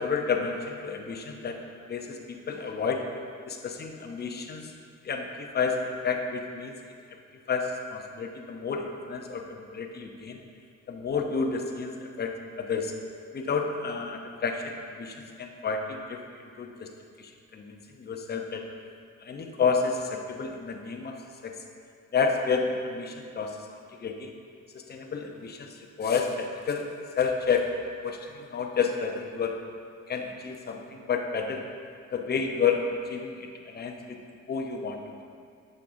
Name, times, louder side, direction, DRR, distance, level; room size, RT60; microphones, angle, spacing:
voice 1, 0.0-1.6 1.9-3.1 3.5-4.7 5.0-6.8 7.5-10.4 10.9-12.9 13.3-16.2 16.6-16.9 17.2-18.6 19.2-21.2 21.4-21.6 22.1-23.6 24.0-24.3 24.7-26.9 27.2-27.7 28.0-29.6 30.1-31.6 32.1-34.2 34.5-35.2, left 5 dB, 35° left, 3 dB, 0.7 m, -30 dB
6.5 x 6.3 x 2.6 m, 2.3 s
cardioid pair, 90°, 30 cm